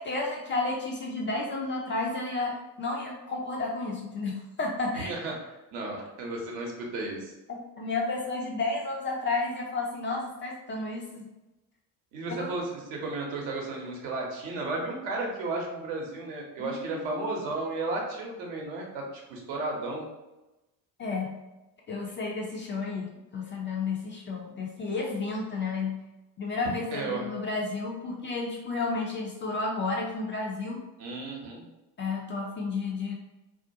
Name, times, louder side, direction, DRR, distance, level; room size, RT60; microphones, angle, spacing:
voice 1, 0.0-5.1 7.8-11.3 12.4-12.5 16.6-17.0 21.0-21.3 21.9-26.0 26.4-30.8 32.0-33.1, left 3 dB, 25° left, -1 dB, 0.3 m, -32 dB
voice 2, 5.0-5.4 5.7-7.3 12.1-20.1 26.9-27.3 31.0-31.6, right 2 dB, 65° right, 0 dB, 0.8 m, -34 dB
2.4 x 2.1 x 2.6 m, 1.0 s
figure-of-eight pair, 50°, 49 cm